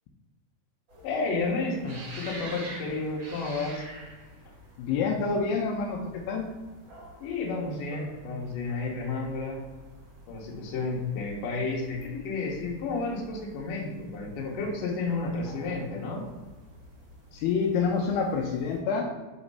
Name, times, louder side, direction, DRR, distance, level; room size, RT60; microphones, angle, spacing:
sound 1, 0.9-18.8, equal, 55° right, 1.2 m, -48 dB
voice 1, 1.0-3.8 7.2-9.6 10.3-16.2, left 3 dB, 65° left, -2 dB, 2.4 m, -31 dB
voice 2, 4.8-6.5 17.3-19.1, left 5 dB, 85° left, 0 dB, 2.5 m, -27 dB
6.1 x 2.9 x 5.4 m, 1.3 s
omnidirectional pair, 4.9 m